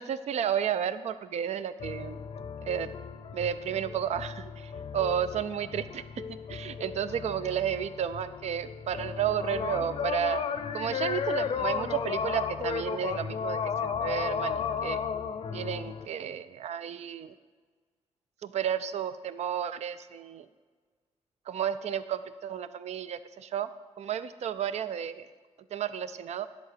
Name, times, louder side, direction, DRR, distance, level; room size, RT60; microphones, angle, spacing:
voice 1, 0.0-2.2 2.6-2.9 3.3-6.0 6.5-10.4 10.7-15.0 15.5-17.3 18.4-20.5 21.5-23.7 24.0-25.3 25.7-26.5, right 9 dB, 75° right, 13 dB, 0.4 m, -32 dB
sound 1, 1.8-16.1, left 7 dB, 55° left, 0.5 m, -34 dB
10.5 x 3.9 x 6.7 m, 1.5 s
wide cardioid pair, 115°, 11 cm